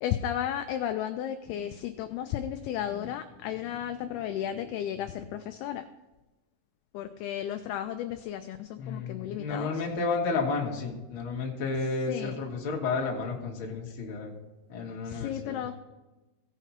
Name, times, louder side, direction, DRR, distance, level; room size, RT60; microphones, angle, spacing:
voice 1, 0.0-5.8 6.9-9.7 12.1-12.3 15.1-15.8, left 10 dB, 85° left, 7 dB, 2.2 m, -33 dB
voice 2, 2.8-3.1 3.4-4.7 5.0-5.2 8.8-14.3 14.7-15.6, left 4 dB, 45° left, -2 dB, 1.7 m, -33 dB
17.5 x 6.0 x 4.2 m, 1.1 s
omnidirectional pair, 5.1 m